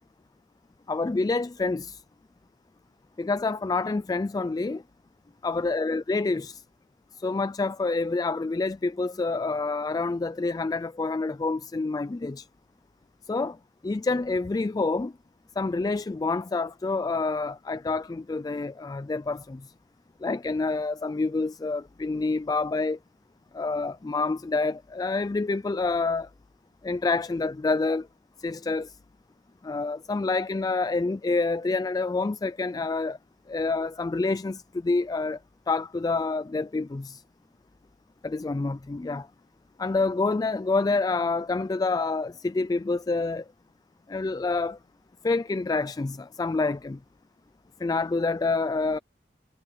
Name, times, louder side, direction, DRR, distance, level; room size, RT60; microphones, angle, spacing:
voice 1, 0.9-2.0 3.2-4.8 5.4-6.6 7.2-12.5 13.3-13.6 13.8-15.1 15.6-19.7 20.2-23.0 23.5-26.3 26.8-28.1 28.4-29.0 29.6-33.2 33.5-35.4 35.7-37.2 38.2-39.3 39.8-43.4 44.1-44.8 45.2-47.0 47.8-49.0, left 3 dB, 20° left, 0.3 m, -27 dB
head